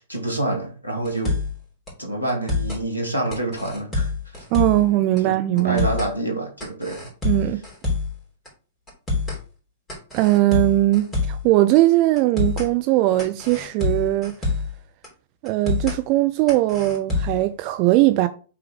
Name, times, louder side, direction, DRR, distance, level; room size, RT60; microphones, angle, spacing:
voice 1, 0.0-1.4 2.0-4.4 5.2-7.1, right 1 dB, 90° right, 1.5 m, -27 dB
sound 1, 1.0-1.6 1.9-2.0 2.3-2.8 3.3-4.9 5.2-5.3 5.6-6.1 6.6-8.2 8.4-8.5 8.9-9.4 9.9-11.5 11.7-11.8 12.2-12.7 13.2-14.8 15.0-15.1 15.4-16.0 16.5-17.4, left 3 dB, 15° left, 3.1 m, -26 dB
voice 2, 4.5-5.9 7.2-7.6 10.1-14.4 15.4-18.3, right 17 dB, 40° right, 0.4 m, -19 dB
5.8 x 3.8 x 4.7 m
figure-of-eight pair, 105°, 0 cm